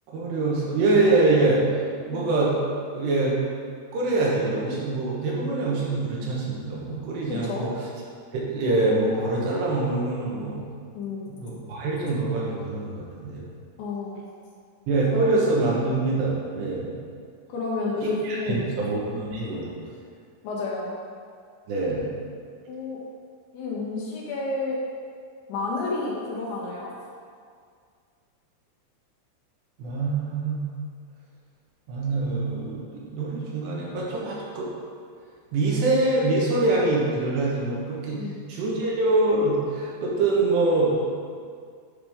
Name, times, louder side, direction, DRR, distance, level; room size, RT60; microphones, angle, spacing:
voice 1, 0.1-1.6 2.1-2.6 2.9-3.4 3.9-7.7 8.3-10.6 11.3-13.4 14.9-16.9 18.0-19.7 21.7-22.1 29.8-30.6 31.9-34.7 35.5-38.2 38.5-41.0, right 2 dB, 70° right, -4 dB, 3.2 m, -24 dB
voice 2, 7.3-7.7 10.9-11.3 13.8-14.2 15.1-15.4 17.5-18.7 20.4-21.0 22.7-23.0 23.5-24.8 25.5-26.9 38.1-38.4, left 3 dB, 80° left, -5 dB, 3.8 m, -30 dB
10.5 x 6.0 x 3.6 m, 2.1 s
omnidirectional pair, 5.3 m